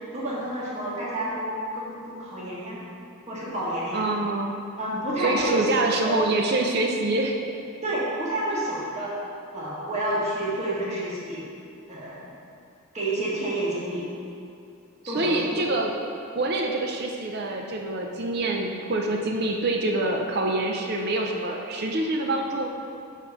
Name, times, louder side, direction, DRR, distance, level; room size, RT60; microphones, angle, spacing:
voice 1, 0.1-2.8 3.3-4.0 4.8-5.7 6.0-6.2 6.7-6.8 7.8-9.1 9.5-11.4 11.9-12.2 12.9-14.1 15.1-15.7, right 1 dB, 30° right, -7 dB, 1.6 m, -29 dB
voice 2, 3.9-4.5 5.2-7.4 15.0-16.0 16.3-22.7, right 2 dB, 45° right, 1 dB, 0.5 m, -26 dB
5.8 x 5.1 x 5.2 m, 2.6 s
head